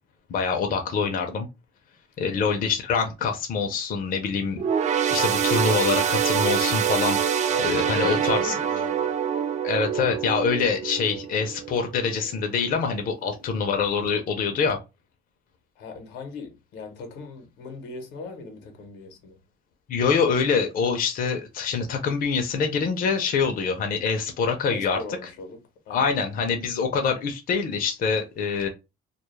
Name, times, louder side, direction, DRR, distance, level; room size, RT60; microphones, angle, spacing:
voice 1, 0.3-1.5 2.2-4.6 5.1-7.2 7.6-8.6 9.6-14.8 19.9-25.0 25.9-28.7, left 5 dB, 55° left, 0.5 m, -25 dB
sound 1, 4.6-12.3 12.7-12.9 13.7-13.8, right 8 dB, 40° right, 0.4 m, -25 dB
voice 2, 7.5-9.1 15.8-19.4 24.7-25.6 25.9-26.1, left 3 dB, 90° left, 0.8 m, -38 dB
2.2 x 2.0 x 3.1 m
cardioid pair, 90°, 18 cm